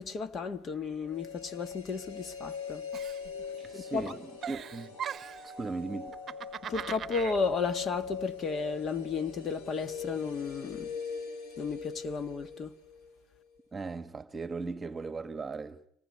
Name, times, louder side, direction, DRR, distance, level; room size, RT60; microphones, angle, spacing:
voice 1, 0.0-2.8 3.7-4.1 6.7-10.9 11.6-12.7, left 4 dB, 40° left, 1.5 m, -33 dB
sound 1, 1.0-13.1 13.4-13.5, left 6 dB, 80° left, 7.7 m, -42 dB
Giggle, 2.9-3.8 4.1-5.5 6.1-7.4, right 8 dB, 35° right, 1.0 m, -40 dB
voice 2, 3.6-4.2 4.5-5.0 5.4-6.1 13.7-15.9, right 4 dB, 20° right, 1.5 m, -38 dB
25.5 x 19.0 x 9.8 m
cardioid pair, 120°, 0 cm